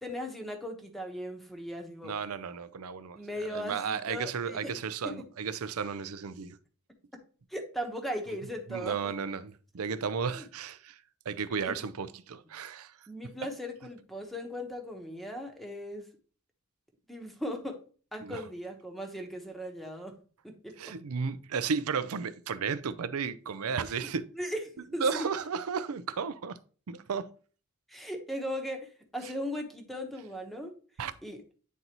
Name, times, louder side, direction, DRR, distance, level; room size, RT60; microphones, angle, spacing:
voice 1, 0.0-2.1 3.1-4.8 5.0-5.2 7.5-9.1 10.3-10.5 11.7-11.9 13.1-16.1 17.1-17.8 18.1-20.2 20.4-20.9 24.0-24.1 24.3-25.2 27.9-30.8 31.2-31.4, equal, ahead, 1.0 m, -38 dB
voice 2, 2.0-6.6 8.7-11.0 11.3-12.9 18.2-18.4 20.8-24.3 25.0-26.6 26.9-27.3 31.0-31.1, right 5 dB, 70° right, 0.5 m, -34 dB
9.2 x 4.0 x 2.9 m
head